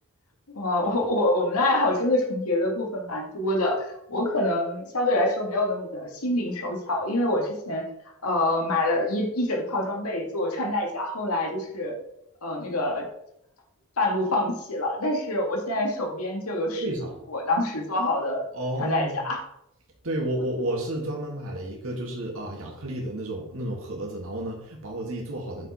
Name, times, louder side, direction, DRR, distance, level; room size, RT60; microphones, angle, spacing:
voice 1, 0.5-7.9 8.2-12.0 12.4-13.1 14.0-16.9 17.3-18.5 18.8-19.4, left 1 dB, 85° left, 1 dB, 2.1 m, -26 dB
voice 2, 18.5-19.2 20.0-25.7, right 1 dB, 70° right, -2 dB, 1.9 m, -31 dB
9.0 x 6.7 x 4.3 m, 0.78 s
head